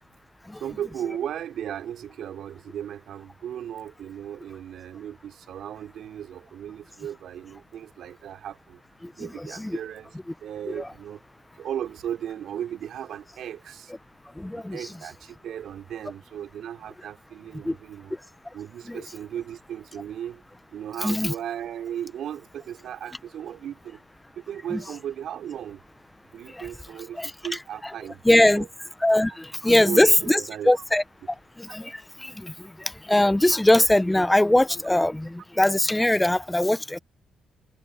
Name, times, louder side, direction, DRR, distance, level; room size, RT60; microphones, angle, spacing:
voice 1, 0.6-8.8 9.2-10.1 10.4-11.2 11.6-13.9 14.5-18.2 18.5-20.4 20.7-24.0 24.4-25.8 26.3-28.7 29.7-30.8 31.7-31.8, right 10 dB, 70° right, 4.3 m, -36 dB
voice 2, 9.0-9.8 10.7-10.9 14.4-14.9 17.6-17.8 18.9-19.0 21.0-21.3 24.7-24.8 26.5-26.7 27.1-27.3 27.8-27.9 28.2-28.7 29.0-31.0 31.6-37.0, left 1 dB, 10° left, 0.8 m, -22 dB
cardioid pair, 90°, 0 cm